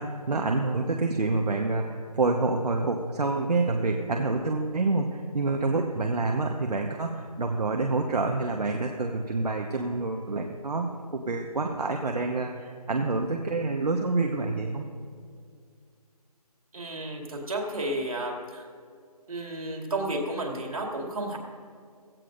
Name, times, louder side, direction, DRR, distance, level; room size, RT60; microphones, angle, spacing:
voice 1, 0.0-10.9 11.1-14.9, right 3 dB, 75° right, 2 dB, 1.2 m, -27 dB
voice 2, 16.7-18.7 19.3-21.4, right 1 dB, 60° right, 1 dB, 2.5 m, -32 dB
16.5 x 14.5 x 2.6 m, 2.2 s
figure-of-eight pair, 175°, 20 cm